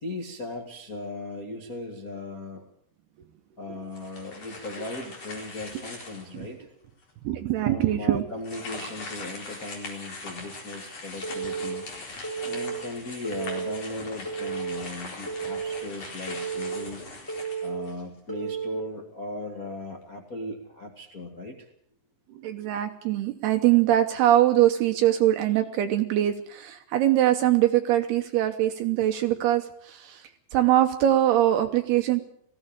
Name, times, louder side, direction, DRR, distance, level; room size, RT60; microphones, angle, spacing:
voice 1, 0.0-2.6 3.6-6.6 7.6-11.8 12.4-17.0 17.6-21.7, left 2 dB, 60° left, 1 dB, 0.9 m, -37 dB
sound 1, 3.9-6.5 7.0-7.1 8.4-18.2, left 3 dB, 40° left, 5.2 m, -41 dB
voice 2, 7.2-8.2 22.4-32.2, right 13 dB, 75° right, 7 dB, 2.5 m, -23 dB
Telephone, 11.2-11.7 12.2-12.7 13.2-13.8 14.2-14.8 15.3-15.8 16.3-16.8 17.3-17.8 18.3-18.8, right 6 dB, 5° left, 4.0 m, -32 dB
19.5 x 16.0 x 8.8 m, 0.69 s
omnidirectional pair, 5.6 m